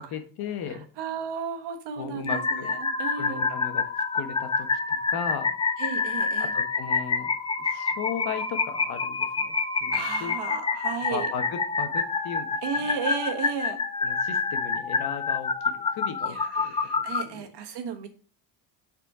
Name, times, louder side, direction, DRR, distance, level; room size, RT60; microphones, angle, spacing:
voice 1, 0.0-0.9 2.0-2.8 3.1-3.8 4.1-5.5 6.4-7.3 7.6-10.4 11.1-13.0 14.0-17.5, left 7 dB, 50° left, 8 dB, 1.3 m, -37 dB
voice 2, 1.0-3.5 5.8-6.5 9.9-11.3 12.6-13.8 16.3-18.1, right 7 dB, 60° right, 5 dB, 1.5 m, -34 dB
sound 1, 2.3-17.2, left 4 dB, 15° left, 0.3 m, -28 dB
6.7 x 4.4 x 4.9 m, 0.40 s
cardioid pair, 130°, 46 cm